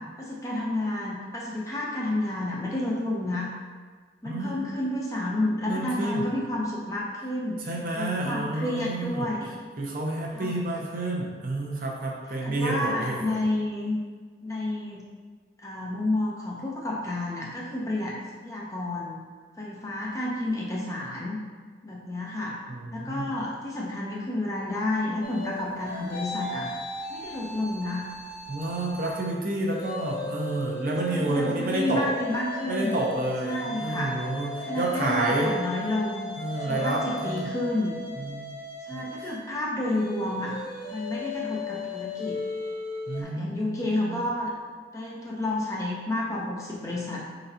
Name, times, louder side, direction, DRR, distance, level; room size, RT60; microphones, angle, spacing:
voice 1, 0.2-3.5 4.2-7.7 8.0-9.5 10.3-10.6 12.4-14.0 14.4-15.0 15.6-18.2 18.4-19.2 19.6-21.4 21.8-22.6 22.9-26.7 27.1-28.0 31.0-33.0 33.4-34.1 34.7-36.3 36.6-38.0 38.9-40.6 40.9-42.4 43.2-44.5 44.9-47.2, left 1 dB, 20° left, -4 dB, 0.6 m, -30 dB
voice 2, 4.2-4.7 5.7-6.3 7.6-9.3 9.8-13.4 22.7-23.3 28.5-32.1 32.7-35.5 36.4-37.5 38.2-38.5 38.9-39.3 43.1-44.2, right 2 dB, 50° right, -2 dB, 0.7 m, -30 dB
sound 1, 25.2-29.3 29.7-43.2, left 2 dB, 55° left, 0.7 m, -37 dB
4.5 x 3.9 x 2.8 m, 1.5 s
head